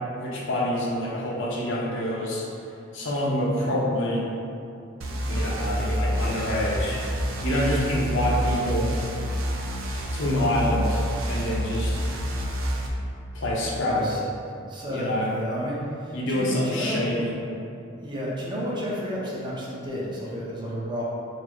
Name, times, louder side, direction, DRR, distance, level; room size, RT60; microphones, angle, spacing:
voice 1, 0.2-2.4 2.9-4.3 5.3-7.0 7.4-8.9 10.1-12.0 13.3-14.2 14.9-15.3 16.1-17.3, left 1 dB, 65° left, -4 dB, 0.7 m, -26 dB
sound 1, 5.0-12.9, equal, 75° right, 0.5 m, -28 dB
voice 2, 13.8-14.2 14.7-17.0 18.0-21.0, equal, 20° right, -6 dB, 0.7 m, -31 dB
4.1 x 2.0 x 4.4 m, 2.6 s
head